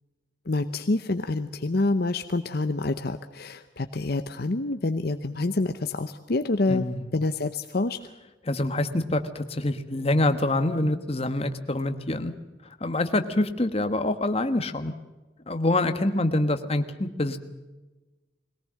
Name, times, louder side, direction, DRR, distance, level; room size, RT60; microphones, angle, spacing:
voice 1, 0.5-6.9 7.1-8.0, left 2 dB, 55° left, 8 dB, 0.8 m, -27 dB
voice 2, 6.7-7.0 8.5-12.3 12.8-14.9 15.5-17.4, left 1 dB, 35° left, 8 dB, 1.3 m, -25 dB
22.0 x 18.0 x 7.6 m, 1.2 s
head